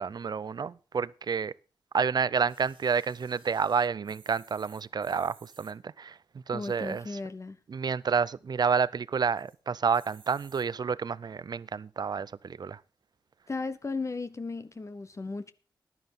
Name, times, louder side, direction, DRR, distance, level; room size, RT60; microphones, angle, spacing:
voice 1, 0.0-1.5 1.9-7.0 7.7-12.8, right 6 dB, 55° right, 0.5 m, -29 dB
sound 1, 2.5-5.7 6.5-7.2 7.7-7.8 7.9-8.0 8.4-8.8 9.3-9.6 9.9-10.7 11.4-11.5, right 6 dB, 80° right, 2.4 m, -58 dB
voice 2, 6.5-7.6 13.5-15.5, left 3 dB, 35° left, 0.9 m, -35 dB
14.5 x 11.0 x 3.8 m
cardioid pair, 75°, 8 cm